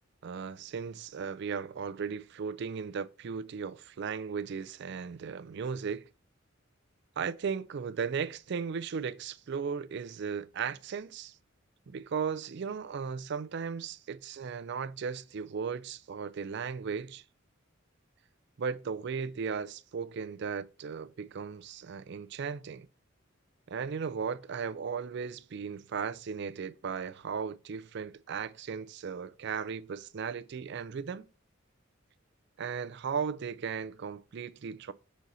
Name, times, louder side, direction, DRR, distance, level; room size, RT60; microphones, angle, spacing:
voice 1, 0.2-6.1 7.2-11.4 11.9-17.2 18.6-22.9 23.7-31.3 32.6-34.9, right 6 dB, 60° right, 0.4 m, -36 dB
6.2 x 4.0 x 4.0 m
head